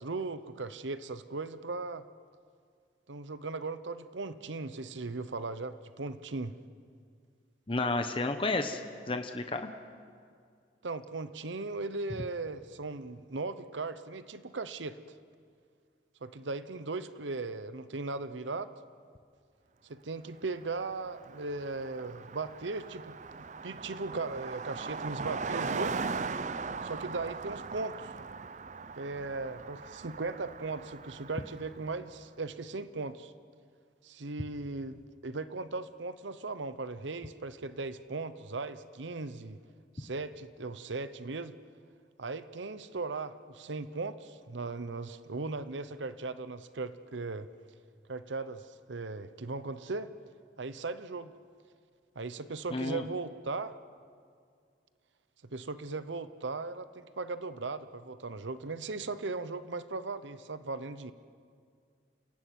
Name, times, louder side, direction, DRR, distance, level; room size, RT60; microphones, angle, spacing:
voice 1, 0.0-2.0 3.1-6.6 10.8-15.0 16.2-18.7 19.9-26.0 26.8-28.1 29.0-33.3 34.0-39.6 39.9-41.6 42.2-47.5 48.1-50.1 50.6-51.3 52.2-53.7 55.5-61.1, right 3 dB, 90° right, 13 dB, 0.9 m, -38 dB
voice 2, 7.7-8.8 9.1-9.7 52.7-53.0, left 2 dB, 30° left, 6 dB, 1.0 m, -31 dB
Car passing by, 20.6-20.7 20.9-31.9, right 4 dB, 40° right, 0.6 m, -39 dB
29.0 x 16.0 x 9.2 m, 2.2 s
head